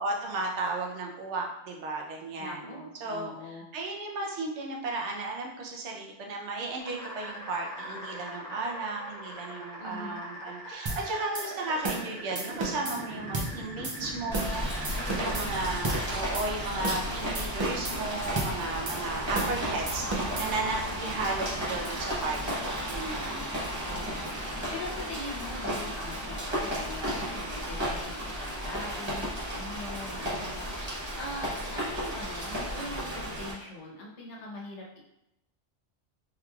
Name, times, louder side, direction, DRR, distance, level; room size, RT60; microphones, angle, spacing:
voice 1, 0.0-23.5, right 3 dB, 75° right, 0 dB, 0.9 m, -34 dB
voice 2, 2.4-3.6 9.8-10.2 14.9-15.9 23.8-35.0, left 2 dB, 75° left, -2 dB, 1.1 m, -42 dB
sound 1, 6.8-25.5, equal, 5° left, 0.8 m, -43 dB
sound 2, 10.9-11.0 11.3-11.5 11.8-12.1 12.4-13.0 13.3-13.5 13.8-14.0 14.3-14.6 14.8-15.5 15.8-16.0 16.3-16.5 16.8-17.1 17.3-18.0 18.4-18.5 18.9-19.0 19.3-19.6 19.9-20.5, right 2 dB, 45° right, 0.3 m, -32 dB
Rain, 14.3-33.5, equal, 25° right, 0.8 m, -34 dB
3.7 x 3.0 x 2.3 m, 0.85 s
omnidirectional pair, 1.2 m